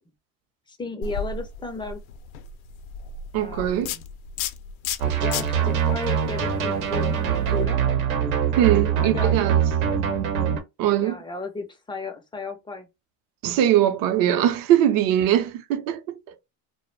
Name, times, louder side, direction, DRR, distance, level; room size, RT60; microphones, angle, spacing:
voice 1, 0.7-2.0 3.4-4.1 5.2-7.8 9.0-9.4 11.0-12.9 15.1-15.3, left 3 dB, 10° left, 0.4 m, -34 dB
sound 1, 1.0-7.6, left 6 dB, 85° left, 0.5 m, -35 dB
voice 2, 3.3-3.9 8.6-9.6 10.8-11.2 13.4-16.2, right 11 dB, 55° right, 0.6 m, -21 dB
sound 2, 5.0-10.6, right 8 dB, 90° right, 0.8 m, -23 dB
2.2 x 2.0 x 3.1 m
supercardioid pair, 115°, 41 cm